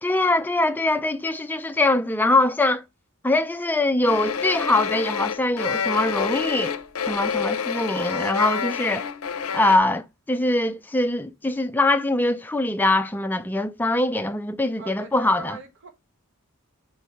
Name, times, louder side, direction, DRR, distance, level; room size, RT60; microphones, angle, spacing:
voice 1, 0.0-2.8 3.2-6.7 7.1-9.1 9.5-15.6, left 2 dB, 10° left, 0.4 m, -23 dB
sound 1, 4.1-9.8, left 6 dB, 75° left, 0.6 m, -28 dB
voice 2, 14.8-15.9, right 4 dB, 55° right, 1.1 m, -40 dB
4.9 x 3.9 x 5.5 m
head